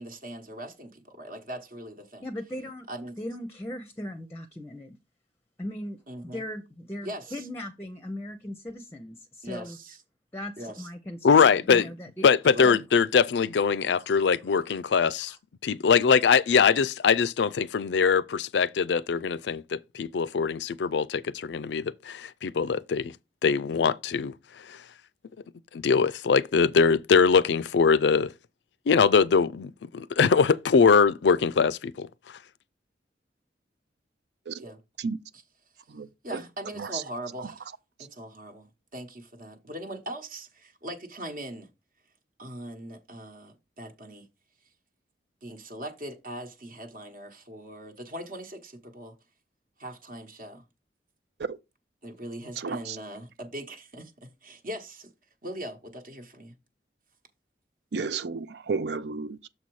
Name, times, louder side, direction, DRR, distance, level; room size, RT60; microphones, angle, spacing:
voice 1, 0.0-2.2 2.9-3.2 6.1-6.4 7.0-7.5 9.4-10.0 10.6-10.9 12.5-12.7 34.6-34.8 36.2-37.6 38.0-41.7 42.4-44.3 45.4-49.1 49.8-50.6 52.0-55.1 55.4-56.5, right 1 dB, 50° right, 1.1 m, -40 dB
voice 2, 2.2-2.9 3.2-5.0 5.6-6.0 6.3-9.8 10.3-12.3 12.6-12.8 14.0-14.1 15.3-15.4, left 1 dB, 15° left, 0.6 m, -38 dB
voice 3, 11.2-11.9 12.2-15.3 15.6-23.1 23.4-24.3 24.7-24.8 25.7-28.3 28.9-32.1, left 5 dB, 80° left, 0.4 m, -22 dB
voice 4, 35.9-36.4 36.8-37.0 37.4-37.5 51.4-51.6 52.6-53.0 57.9-59.5, right 4 dB, 70° right, 0.5 m, -33 dB
6.8 x 4.1 x 4.7 m
head